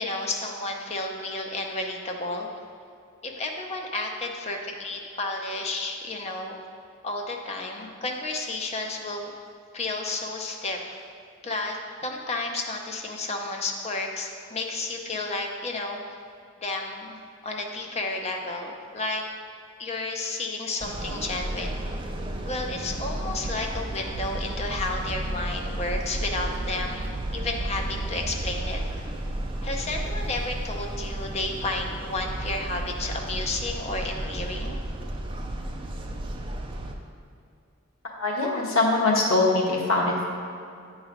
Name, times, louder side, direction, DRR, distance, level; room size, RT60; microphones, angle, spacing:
voice 1, 0.0-2.5 3.2-6.6 7.0-9.3 9.7-11.0 11.4-16.0 16.6-19.2 19.8-21.8 22.4-28.8 29.6-34.8, left 2 dB, 30° left, 2 dB, 0.6 m, -32 dB
sound 1, 20.8-36.9, right 1 dB, 25° right, 0.4 m, -33 dB
voice 2, 38.0-40.2, left 2 dB, 90° left, -2 dB, 1.2 m, -23 dB
9.2 x 3.2 x 5.0 m, 2.4 s
head